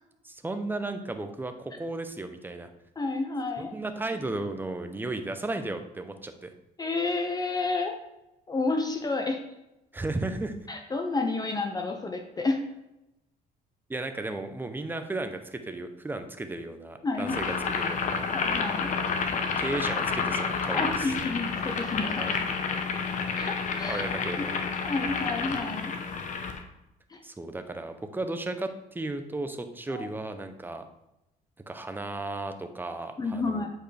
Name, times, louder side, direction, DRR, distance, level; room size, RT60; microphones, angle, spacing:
voice 1, 0.2-2.7 3.6-6.5 9.9-10.6 13.9-18.3 19.6-21.1 23.9-24.5 27.2-30.8 31.7-33.7, right 2 dB, 10° right, 7 dB, 0.6 m, -34 dB
voice 2, 3.0-3.7 6.8-8.0 8.5-9.4 10.7-12.6 17.0-17.7 18.3-18.9 20.7-22.4 23.4-24.0 24.4-24.5 24.8-25.9 27.1-27.2 29.9-30.1 33.2-33.7, left 3 dB, 25° left, 4 dB, 0.7 m, -30 dB
Boiling, 17.2-26.6, left 5 dB, 50° left, 0.8 m, -30 dB
7.9 x 4.5 x 3.3 m, 0.89 s
cardioid pair, 110°, 17 cm